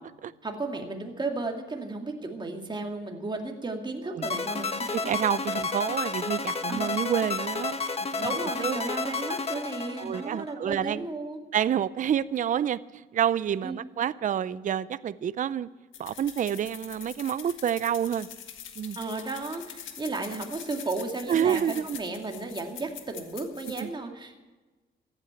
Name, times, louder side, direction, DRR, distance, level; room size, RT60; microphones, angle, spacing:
voice 1, 0.4-5.1 6.7-6.9 8.2-11.4 13.6-13.8 19.0-24.4, right 3 dB, 25° right, 2.3 m, -34 dB
sound 1, 4.2-10.5, left 4 dB, 30° left, 1.4 m, -31 dB
voice 2, 4.9-7.7 8.1-8.8 10.0-11.1 11.5-15.7 16.0-18.3 18.8-19.0 21.3-22.0 23.8-23.9, right 9 dB, 40° right, 0.5 m, -28 dB
sound 2, 15.9-23.8, left 9 dB, 75° left, 1.6 m, -44 dB
14.5 x 9.1 x 8.8 m
cardioid pair, 90°, 20 cm